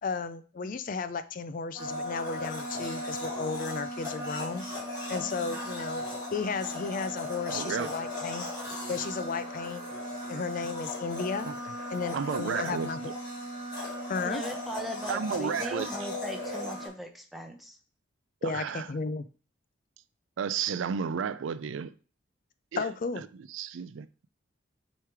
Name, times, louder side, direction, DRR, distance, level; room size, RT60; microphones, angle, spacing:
voice 1, 0.0-4.6 5.1-6.0 6.3-8.4 8.9-9.8 10.3-11.5 11.9-13.1 14.1-14.4 18.4-19.2 22.8-23.2, left 4 dB, 40° left, 0.4 m, -34 dB
Domestic sounds home sounds, 1.8-16.9, left 1 dB, 20° left, 4.0 m, -37 dB
voice 2, 5.2-5.6 14.2-17.8, right 1 dB, ahead, 0.9 m, -39 dB
voice 3, 7.5-8.0 11.4-11.5 12.1-13.1 15.1-15.9 18.4-18.9 20.4-21.9 22.7-22.9 23.5-24.1, right 7 dB, 75° right, 0.4 m, -32 dB
9.0 x 3.2 x 4.7 m
head